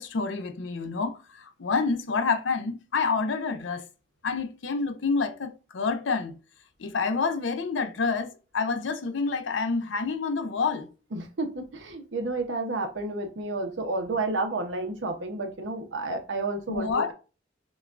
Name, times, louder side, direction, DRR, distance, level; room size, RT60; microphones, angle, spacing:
voice 1, 0.0-3.8 4.2-6.3 6.8-10.9 16.7-17.1, left 4 dB, 80° left, 0.6 m, -28 dB
voice 2, 11.1-17.1, right 2 dB, 80° right, 0.8 m, -31 dB
6.1 x 2.3 x 2.5 m
head